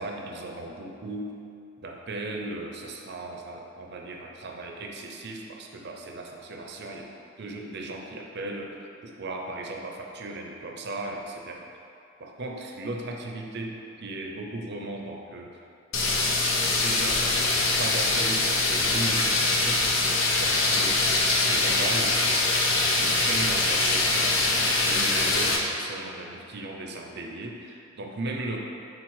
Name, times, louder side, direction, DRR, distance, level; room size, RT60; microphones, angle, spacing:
voice 1, 0.0-1.4 1.8-7.1 7.4-11.7 12.2-15.6 16.0-16.3 16.7-19.8 20.4-22.5 23.0-24.5 24.8-28.6, right 2 dB, 55° right, 1 dB, 0.7 m, -36 dB
sound 1, 15.9-25.6, left 2 dB, 70° left, 0.8 m, -23 dB
6.1 x 3.8 x 4.8 m, 2.7 s
head